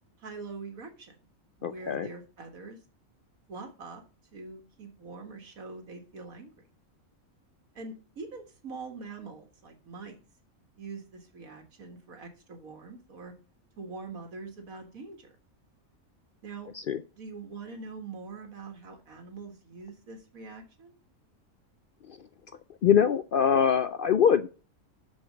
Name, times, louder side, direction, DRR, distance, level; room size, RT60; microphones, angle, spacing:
voice 1, 0.2-1.2 1.6-2.8 3.5-4.0 4.3-6.7 7.7-10.2 10.8-13.3 13.8-15.4 16.4-16.7 17.2-21.0, right 4 dB, 85° right, 4 dB, 2.2 m, -43 dB
voice 2, 1.6-2.1 16.7-17.0 22.1-22.2 22.8-24.5, left 8 dB, 70° left, 12 dB, 0.5 m, -23 dB
6.8 x 6.2 x 6.4 m, 0.35 s
omnidirectional pair, 1.4 m